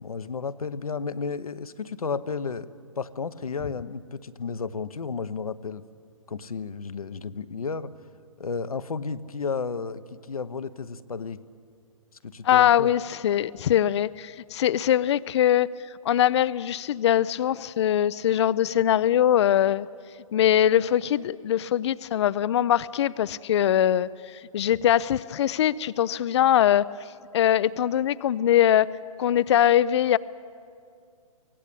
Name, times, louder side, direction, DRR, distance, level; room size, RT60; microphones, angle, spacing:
voice 1, 0.0-2.7 3.0-5.8 6.3-7.9 8.4-11.4 12.2-12.9, left 5 dB, 80° left, 13 dB, 0.9 m, -32 dB
voice 2, 12.4-15.7 16.0-19.9 20.3-26.8 27.3-28.9 29.2-30.2, left 11 dB, 50° left, 18 dB, 0.5 m, -22 dB
24.0 x 17.5 x 8.6 m, 2.2 s
figure-of-eight pair, 130°, 18 cm